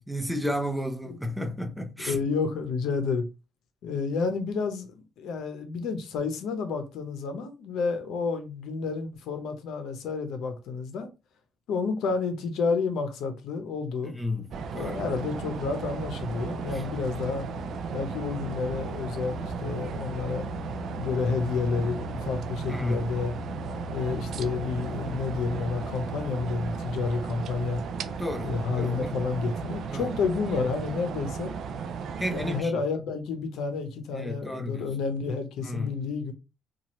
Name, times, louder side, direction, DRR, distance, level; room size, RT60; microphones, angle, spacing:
voice 1, 0.1-2.2 14.0-15.0 16.7-16.8 22.7-23.1 28.2-29.2 29.9-30.1 32.2-32.7 34.1-34.9 35.6-35.9, left 1 dB, 5° right, 0.7 m, -33 dB
voice 2, 2.0-3.3 3.8-11.1 11.7-14.2 14.7-17.5 17.9-20.5 21.0-23.3 23.9-27.8 28.4-31.5 32.3-36.3, left 4 dB, 85° left, 0.7 m, -30 dB
sound 1, 14.5-32.6, right 4 dB, 70° right, 0.3 m, -35 dB
2.8 x 2.4 x 3.0 m
cardioid pair, 85°, 0 cm